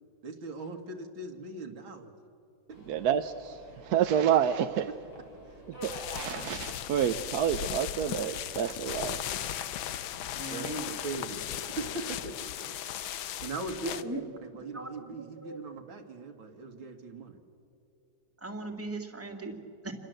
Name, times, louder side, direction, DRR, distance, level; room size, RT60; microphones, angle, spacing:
voice 1, 0.2-2.1 4.9-5.0 5.5-5.6 10.5-12.5 13.4-17.4, right 3 dB, 80° right, 4 dB, 2.8 m, -40 dB
Subway metro underground, 2.7-11.9, equal, 70° left, 7.5 m, -50 dB
voice 2, 2.9-4.9 5.7-9.2, right 9 dB, 65° right, 8 dB, 1.1 m, -29 dB
sound 1, 5.8-14.0, left 11 dB, 85° left, 1.6 m, -37 dB
voice 3, 10.3-10.8 13.8-14.2 14.7-14.9 15.4-15.6 18.4-19.9, right 2 dB, 5° right, 2 dB, 2.0 m, -38 dB
28.0 x 21.5 x 7.9 m, 2.7 s
omnidirectional pair, 2.2 m